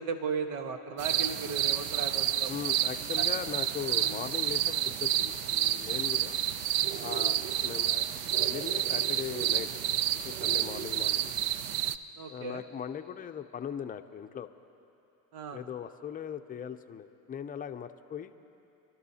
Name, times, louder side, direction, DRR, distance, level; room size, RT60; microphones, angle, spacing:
voice 1, 0.0-2.7 3.2-3.3 3.9-4.2 7.3-7.5 12.2-12.6 15.3-15.7, right 5 dB, 85° right, 6 dB, 1.2 m, -37 dB
sound 1, 1.0-12.0, right 11 dB, 70° right, 0.6 m, -29 dB
voice 2, 2.5-6.4 7.0-8.1 8.4-9.7 10.1-11.3 12.3-14.5 15.5-18.3, left 8 dB, 20° left, 7 dB, 0.5 m, -39 dB
26.5 x 12.0 x 2.8 m, 2.8 s
supercardioid pair, 95°, 42 cm